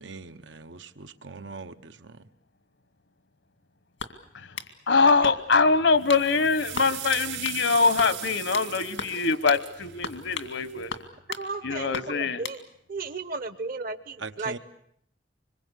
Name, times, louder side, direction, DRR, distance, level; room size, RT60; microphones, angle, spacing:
voice 1, 0.0-2.3 14.2-14.6, right 4 dB, 85° right, 1.1 m, -41 dB
sound 1, 4.0-4.7 5.2-5.6 6.1-6.3 6.7-6.9 7.4-7.6 8.0-8.7 9.0-9.2 9.5-9.6 10.0-10.5 10.9-11.5 11.9-12.6, left 5 dB, 90° left, 2.3 m, -36 dB
voice 2, 4.9-10.9 11.6-12.4, left 4 dB, 70° left, 1.2 m, -23 dB
sound 2, 6.0-10.8, right 13 dB, 70° right, 3.4 m, -39 dB
voice 3, 11.4-12.6 12.9-14.6, right 3 dB, 50° right, 0.9 m, -34 dB
25.5 x 22.0 x 8.3 m
head